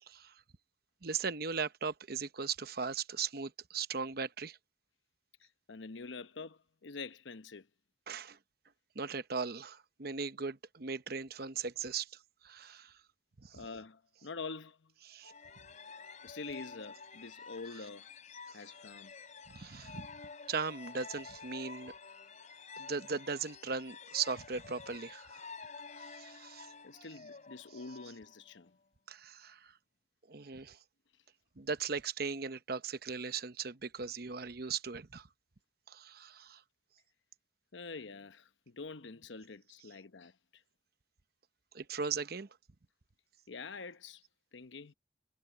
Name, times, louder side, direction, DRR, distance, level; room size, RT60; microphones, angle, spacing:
voice 1, 0.0-0.4 1.0-4.6 8.1-8.4 8.9-13.0 13.4-13.7 15.0-15.3 18.5-18.7 19.5-20.1 20.5-21.9 22.8-25.5 25.9-27.1 29.1-29.8 30.3-30.8 31.6-35.3 35.9-36.6 41.7-42.6, right 5 dB, 55° right, 0.9 m, -38 dB
voice 2, 5.7-7.7 13.5-14.9 16.2-18.1 18.5-19.1 26.8-28.8 37.7-40.3 43.5-44.2 44.5-44.9, left 4 dB, 85° left, 0.9 m, -46 dB
sound 1, 15.2-28.7, left 5 dB, 45° left, 3.1 m, -50 dB
head